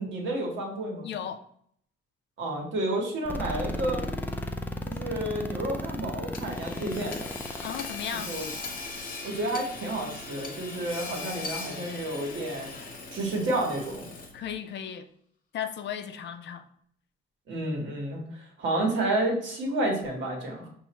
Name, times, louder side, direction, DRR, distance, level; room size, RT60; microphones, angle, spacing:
voice 1, 0.0-1.1 2.4-4.0 4.9-7.3 8.2-8.5 9.2-12.7 13.1-14.1 17.5-20.7, right 1 dB, 70° right, 1.4 m, -30 dB
voice 2, 1.0-1.4 7.6-8.3 14.3-15.1 15.5-16.6, left 8 dB, 65° left, 0.5 m, -35 dB
sound 1, 3.3-9.0, left 1 dB, 10° left, 0.4 m, -34 dB
Hammer / Sawing, 6.3-14.5, left 3 dB, 45° left, 0.9 m, -39 dB
5.6 x 2.7 x 2.9 m
cardioid pair, 90°, 20 cm